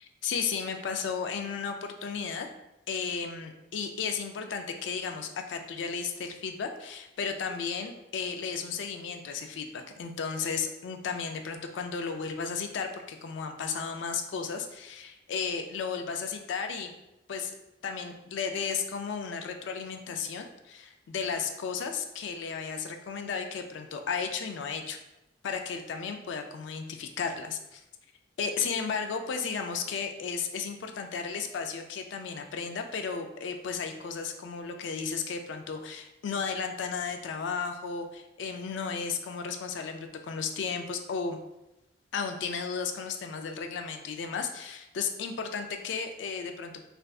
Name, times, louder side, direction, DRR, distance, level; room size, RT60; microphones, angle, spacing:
voice 1, 0.2-2.5 2.9-16.9 17.3-17.5 17.8-25.0 25.4-27.8 28.4-41.4 42.1-46.9, left 5 dB, 75° left, 5 dB, 0.3 m, -34 dB
3.3 x 2.6 x 2.3 m, 0.92 s
head